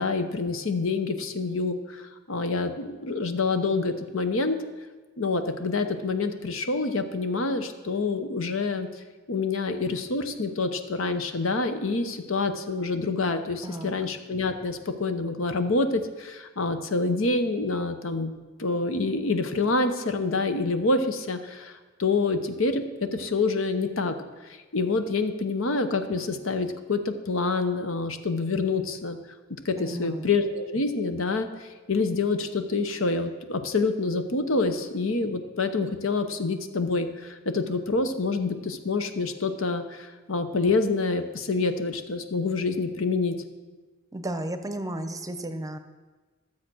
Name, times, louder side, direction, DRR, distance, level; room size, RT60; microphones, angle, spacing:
voice 1, 0.0-4.6 5.2-8.9 9.3-18.3 18.6-22.8 23.1-24.1 24.7-29.2 29.6-31.5 31.9-43.3, left 3 dB, 70° left, 8 dB, 0.9 m, -27 dB
voice 2, 13.6-13.9 29.8-30.3 44.1-45.8, right 1 dB, 15° right, 9 dB, 0.7 m, -33 dB
13.0 x 7.4 x 6.2 m, 1.3 s
head